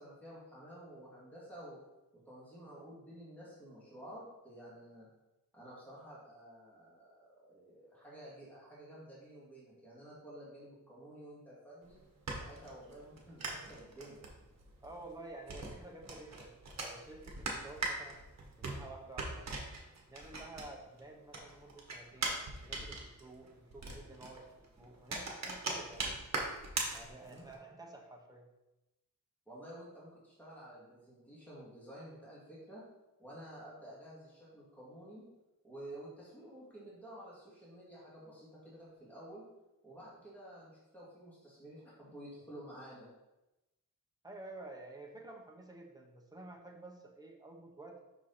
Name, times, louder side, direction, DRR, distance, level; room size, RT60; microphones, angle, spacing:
voice 1, 0.0-1.8 2.3-5.1 5.5-12.0 12.4-14.3 27.3-27.5 29.5-32.8 33.2-35.3 35.6-39.5 39.8-43.1, right 1 dB, 5° left, -8 dB, 1.8 m, -51 dB
sound 1, 11.8-21.0 21.3-27.5, right 3 dB, 50° right, 1.2 m, -41 dB
voice 2, 14.8-16.5 16.8-18.2 18.6-19.5 20.1-22.4 22.7-26.1 26.9-28.5 44.2-48.0, right 2 dB, 10° right, 0 dB, 0.9 m, -51 dB
5.7 x 4.7 x 4.0 m, 0.98 s
wide cardioid pair, 175°, 34 cm